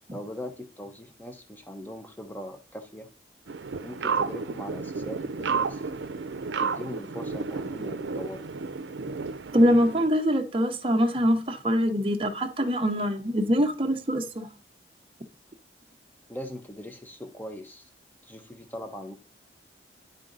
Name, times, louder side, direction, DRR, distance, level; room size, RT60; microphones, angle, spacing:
voice 1, 0.1-3.1 3.8-5.8 6.6-8.4 16.3-17.9 18.2-19.1, left 1 dB, 10° left, 0.8 m, -40 dB
sound 1, 3.5-10.1, right 5 dB, 75° right, 0.5 m, -32 dB
voice 2, 9.5-14.5, equal, 30° right, 0.7 m, -24 dB
10.5 x 3.9 x 3.9 m
head